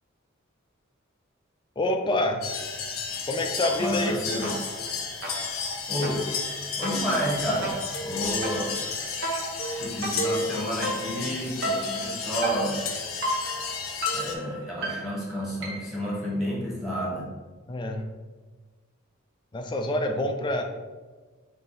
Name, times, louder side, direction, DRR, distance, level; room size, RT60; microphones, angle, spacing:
voice 1, 1.8-2.4 3.3-4.2 17.7-18.1 19.5-20.6, left 1 dB, 25° left, 5 dB, 0.4 m, -26 dB
sound 1, 2.4-14.3, left 4 dB, 85° left, 0.5 m, -32 dB
sound 2, 3.6-4.1 4.4-16.0, right 1 dB, 60° right, 1.0 m, -34 dB
voice 2, 3.8-4.5 5.9-6.2 6.8-8.8 9.8-12.8 14.1-17.3, equal, ahead, -6 dB, 1.2 m, -30 dB
3.8 x 2.7 x 4.0 m, 1.3 s
head